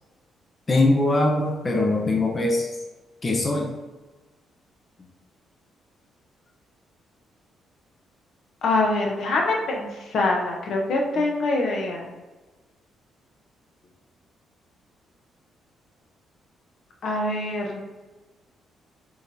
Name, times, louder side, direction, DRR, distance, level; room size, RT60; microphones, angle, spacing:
voice 1, 0.7-2.7 3.2-3.7 11.2-11.3, left 2 dB, 30° left, 1 dB, 0.6 m, -22 dB
voice 2, 8.6-12.1 17.0-17.8, left 2 dB, 65° left, 0 dB, 0.8 m, -24 dB
4.7 x 3.3 x 2.7 m, 1.2 s
cardioid pair, 90°, 0 cm